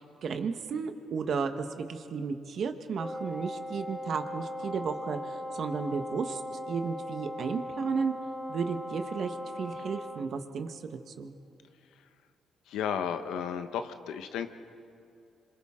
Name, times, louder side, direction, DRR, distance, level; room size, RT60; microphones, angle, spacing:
voice 1, 0.0-6.4 6.7-8.1 8.5-11.3, right 5 dB, 60° right, 7 dB, 1.3 m, -33 dB
Wind instrument woodwind instrument, 3.0-10.3, left 1 dB, ahead, 2.7 m, -39 dB
voice 2, 12.7-14.5, left 8 dB, 85° left, 8 dB, 1.0 m, -33 dB
27.5 x 26.0 x 3.8 m, 2.5 s
cardioid pair, 90°, 0 cm